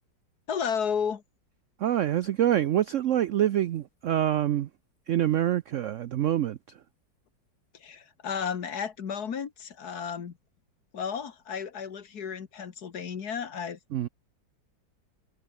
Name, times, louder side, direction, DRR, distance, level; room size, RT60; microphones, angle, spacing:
voice 1, 0.5-1.2 7.7-10.4 10.9-13.8, left 7 dB, 60° left, 2.0 m, -33 dB
voice 2, 1.8-4.7 5.1-6.8 13.9-14.1, right 11 dB, 85° right, 0.6 m, -26 dB
omnidirectional pair, 2.0 m